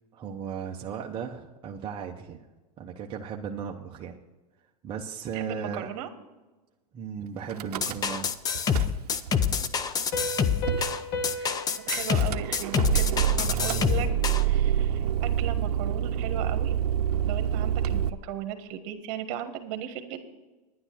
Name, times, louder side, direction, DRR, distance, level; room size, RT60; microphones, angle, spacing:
voice 1, 0.1-2.4 2.8-4.2 4.8-5.9 6.9-8.3 9.6-9.7, right 7 dB, 25° right, 0 dB, 0.9 m, -36 dB
voice 2, 5.3-6.1 7.4-7.5 11.3-11.6 11.9-14.1 14.4-16.7 17.2-20.2, right 10 dB, 50° right, 8 dB, 1.5 m, -36 dB
Car / Engine starting / Idling, 7.5-8.3 8.6-9.3 10.0-10.1 10.3-10.4 10.7-11.0 11.9-18.1, right 9 dB, 80° right, 0.7 m, -27 dB
sound 1, 7.8-14.4, left 7 dB, 20° left, 0.6 m, -26 dB
Piano, 10.1-13.5, left 1 dB, 45° left, 1.5 m, -36 dB
10.5 x 9.7 x 6.1 m, 1.1 s
hypercardioid pair, 125°, 20 cm